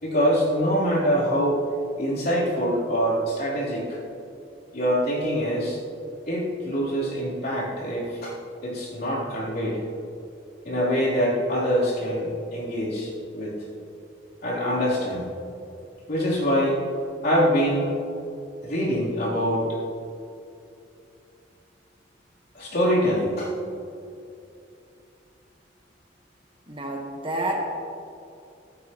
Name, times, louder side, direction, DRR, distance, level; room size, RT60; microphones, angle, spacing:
voice 1, 0.0-1.7 2.0-4.0 4.7-5.8 6.3-8.3 8.6-9.8 10.6-13.6 14.4-15.3 16.1-16.8 17.2-17.9 18.6-19.8 22.5-23.5, equal, 55° left, -6 dB, 3.4 m, -24 dB
voice 2, 26.7-27.6, right 1 dB, 25° right, 0 dB, 1.3 m, -29 dB
15.0 x 13.5 x 3.1 m, 2.6 s
head